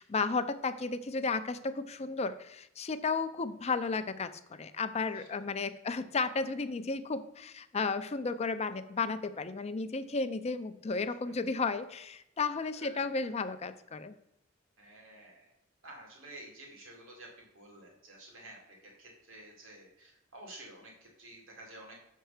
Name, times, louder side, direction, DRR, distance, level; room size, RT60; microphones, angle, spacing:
voice 1, 0.0-14.2, left 4 dB, 30° left, 11 dB, 0.5 m, -33 dB
voice 2, 12.8-13.1 14.8-15.5 15.8-17.3 17.5-21.9, right 1 dB, 85° right, -1 dB, 2.3 m, -51 dB
6.6 x 4.6 x 6.4 m, 0.83 s
head